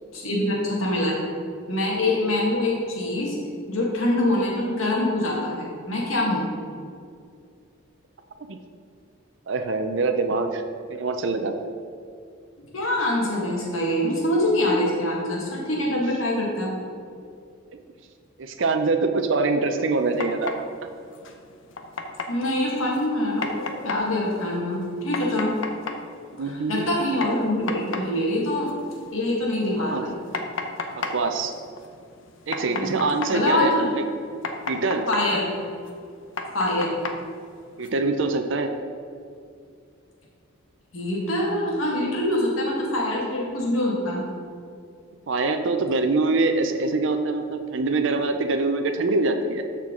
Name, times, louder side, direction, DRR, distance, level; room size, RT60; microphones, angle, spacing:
voice 1, 0.1-1.2 1.7-3.3 3.7-6.5 12.6-16.7 22.3-25.5 26.4-28.7 29.1-30.1 32.7-32.9 33.3-33.9 35.1-35.5 36.5-36.9 40.9-44.2, left 1 dB, 85° left, -3 dB, 1.7 m, -24 dB
voice 2, 9.5-10.6 10.9-11.7 18.4-20.5 26.4-26.9 29.8-30.0 30.9-31.5 32.5-34.0 34.6-35.1 37.8-38.7 45.3-49.6, right 3 dB, 65° right, 6 dB, 0.5 m, -24 dB
sound 1, 20.0-37.9, left 3 dB, 70° left, 0.8 m, -36 dB
13.0 x 4.5 x 3.7 m, 2.3 s
head